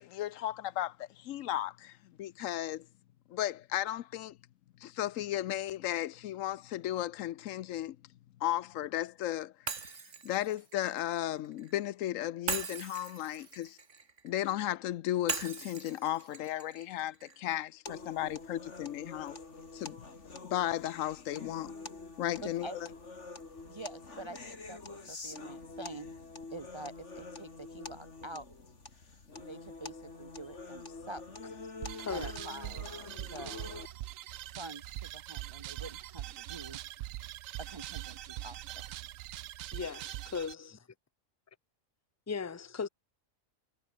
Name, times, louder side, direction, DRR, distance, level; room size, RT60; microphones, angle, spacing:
voice 1, 0.0-1.9 2.2-2.9 3.3-4.4 4.8-8.0 8.4-9.9 10.2-13.8 14.2-19.4 19.7-20.0 20.5-21.7 22.2-22.7, left 13 dB, 85° left, 1.0 m, -35 dB
Shatter, 9.7-11.7 12.5-14.6 15.3-17.4, right 5 dB, 70° right, 2.2 m, -40 dB
sound 1, 17.9-33.9, left 3 dB, 65° left, 3.2 m, -46 dB
voice 2, 22.4-22.8 23.7-26.1 26.5-28.6 29.4-31.5 32.0-32.8 33.2-33.7 34.5-36.8 37.6-39.0, right 2 dB, 40° right, 0.4 m, -46 dB
sound 2, 31.8-40.5, right 14 dB, 90° right, 1.0 m, -42 dB
voice 3, 32.0-32.3 39.7-40.0 40.3-40.7 42.3-42.9, left 5 dB, 20° left, 0.5 m, -36 dB
omnidirectional pair, 1.3 m